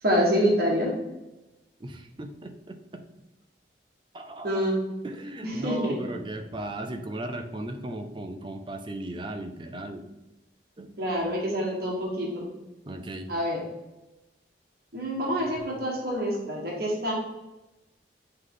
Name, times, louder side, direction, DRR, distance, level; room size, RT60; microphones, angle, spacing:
voice 1, 0.0-0.9 4.4-4.8 5.4-6.0 11.0-12.5 13.3-13.6 14.9-17.1, equal, 55° right, -2 dB, 1.2 m, -26 dB
voice 2, 1.8-3.0 4.1-4.6 5.0-10.1 10.8-11.0 12.9-13.3, right 1 dB, 25° right, 6 dB, 0.5 m, -37 dB
7.9 x 3.3 x 3.8 m, 1.0 s
head